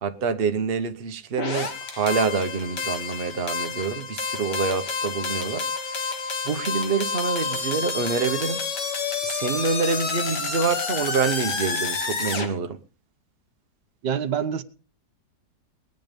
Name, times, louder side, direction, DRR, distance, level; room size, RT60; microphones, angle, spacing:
voice 1, 0.0-6.2 6.4-8.6 9.2-12.8, right 5 dB, 40° right, 1.1 m, -26 dB
sound 1, 1.4-12.5, left 4 dB, 75° left, 2.5 m, -29 dB
voice 2, 14.0-14.6, right 8 dB, 80° right, 1.6 m, -26 dB
20.0 x 9.3 x 5.2 m
omnidirectional pair, 1.9 m